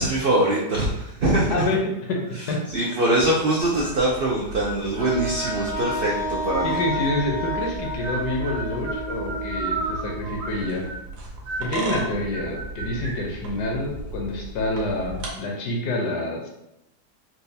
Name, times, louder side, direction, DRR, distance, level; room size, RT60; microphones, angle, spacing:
voice 1, 0.0-1.5 2.7-6.8, right 1 dB, 80° right, -4 dB, 0.5 m, -23 dB
voice 2, 1.5-2.6 6.6-10.8 11.6-16.5, left 1 dB, 80° left, 0 dB, 1.3 m, -27 dB
sound 1, 3.6-15.3, right 1 dB, 65° right, 1.1 m, -34 dB
Wind instrument woodwind instrument, 5.0-10.7, equal, 40° right, 0.7 m, -31 dB
4.3 x 2.3 x 2.7 m, 0.86 s
omnidirectional pair, 1.7 m